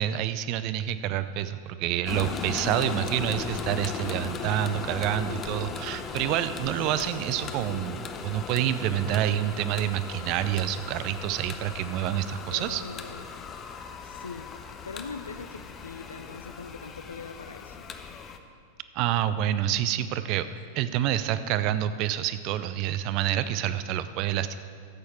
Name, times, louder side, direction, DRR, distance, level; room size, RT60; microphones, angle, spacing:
voice 1, 0.0-12.8 18.9-24.6, right 11 dB, 40° right, 13 dB, 0.5 m, -28 dB
sound 1, 2.1-18.4, left 6 dB, 25° left, 0.7 m, -37 dB
voice 2, 2.7-3.2 6.9-7.2 12.5-13.3 14.0-14.5 14.8-17.8 20.9-21.0, left 5 dB, 75° left, 11 dB, 0.5 m, -42 dB
13.0 x 8.4 x 4.6 m, 2.2 s
figure-of-eight pair, 90°, 0 cm